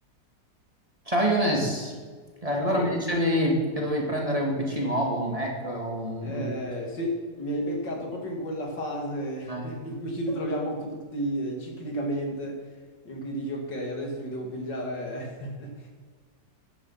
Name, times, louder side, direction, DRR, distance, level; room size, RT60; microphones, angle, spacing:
voice 1, 1.1-1.9 2.4-6.5 9.5-9.6, equal, 20° right, -1 dB, 2.3 m, -26 dB
voice 2, 2.5-3.0 6.2-12.6 13.0-15.9, equal, 80° left, 1 dB, 3.1 m, -32 dB
14.0 x 10.5 x 5.8 m, 1.5 s
omnidirectional pair, 1.9 m